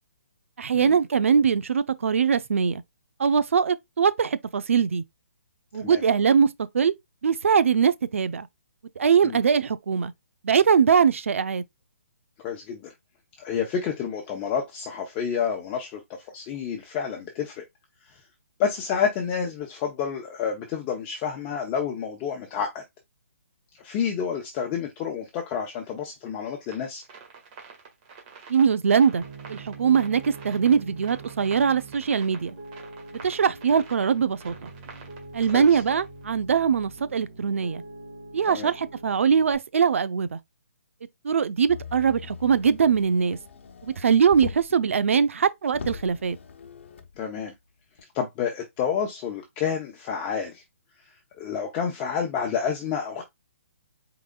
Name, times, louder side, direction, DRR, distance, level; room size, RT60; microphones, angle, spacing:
voice 1, 0.6-2.8 3.2-5.0 5.7-6.9 7.2-8.5 9.0-10.1 10.4-11.6 28.5-29.2 29.5-32.5 33.2-34.7 35.3-37.8 38.3-40.4 41.2-43.4 43.8-46.4, right 6 dB, 65° right, 0.6 m, -22 dB
voice 2, 12.4-12.9 13.4-17.6 18.1-18.2 18.6-22.8 23.8-27.0 35.5-35.8 38.5-38.7 47.2-47.5 48.1-50.6 51.4-53.2, left 7 dB, 20° left, 0.8 m, -29 dB
sound 1, 26.6-36.4, right 6 dB, 30° right, 1.9 m, -47 dB
Piano, 29.2-39.5, right 3 dB, 45° right, 2.4 m, -44 dB
Motor vehicle (road), 41.7-44.8 45.3-45.4 45.7-47.1 48.0-48.1, left 6 dB, 60° left, 0.9 m, -40 dB
4.8 x 3.9 x 2.3 m
hypercardioid pair, 150°, 8 cm